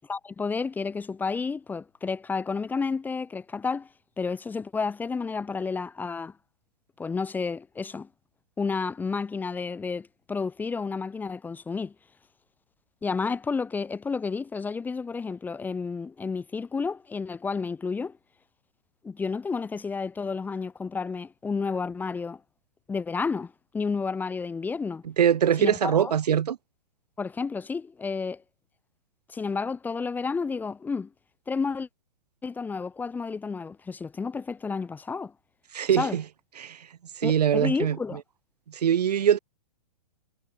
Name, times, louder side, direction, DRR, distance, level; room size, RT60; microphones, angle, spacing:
voice 1, 0.0-3.9 4.2-6.3 7.0-8.1 8.6-11.9 13.0-18.2 19.0-22.4 22.9-25.0 25.6-26.1 27.2-28.4 29.3-31.1 31.5-31.9 32.4-35.3 36.0-36.2 37.2-38.2, left 4 dB, 10° left, 1.2 m, -31 dB
voice 2, 25.2-26.6 35.7-36.2 36.6-36.8 37.2-38.0 38.7-39.4, right 9 dB, 80° right, 0.7 m, -22 dB
hypercardioid pair, 135°, 20 cm